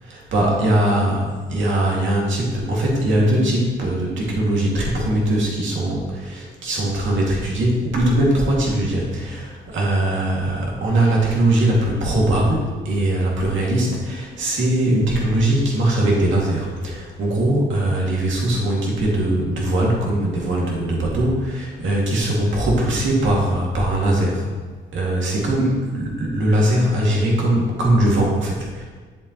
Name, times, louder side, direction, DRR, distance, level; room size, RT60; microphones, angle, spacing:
voice 1, 0.0-1.2 1.5-24.5 24.9-28.8, right 1 dB, 75° right, -3 dB, 2.4 m, -20 dB
8.5 x 7.1 x 3.1 m, 1.5 s
cardioid pair, 90°, 20 cm